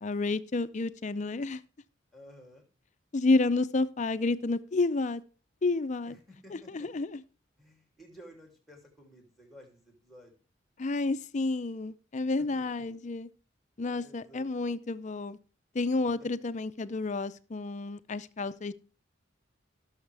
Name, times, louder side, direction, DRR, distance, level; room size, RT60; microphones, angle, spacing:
voice 1, 0.0-1.6 3.1-5.2 5.6-6.2 6.5-7.2 10.8-13.3 13.8-15.4 15.7-18.7, left 3 dB, 40° left, 0.5 m, -30 dB
voice 2, 2.1-2.7 6.1-6.9 7.6-10.3 12.4-12.6 13.9-14.5 16.2-16.3, equal, ahead, 2.8 m, -54 dB
18.0 x 6.4 x 3.4 m
head